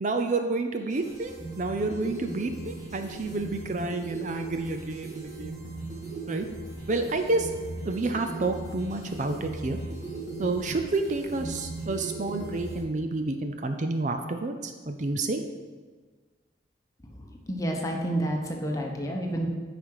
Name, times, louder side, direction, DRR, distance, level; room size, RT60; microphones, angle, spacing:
voice 1, 0.0-5.6 6.3-6.5 6.9-7.5 7.8-9.8 10.4-15.4, right 3 dB, 40° right, 6 dB, 0.5 m, -29 dB
sound 1, 0.8-12.8, right 2 dB, 20° right, 2.4 m, -38 dB
voice 2, 17.5-19.5, right 1 dB, 20° left, 1 dB, 1.0 m, -29 dB
9.2 x 5.1 x 4.8 m, 1.4 s
head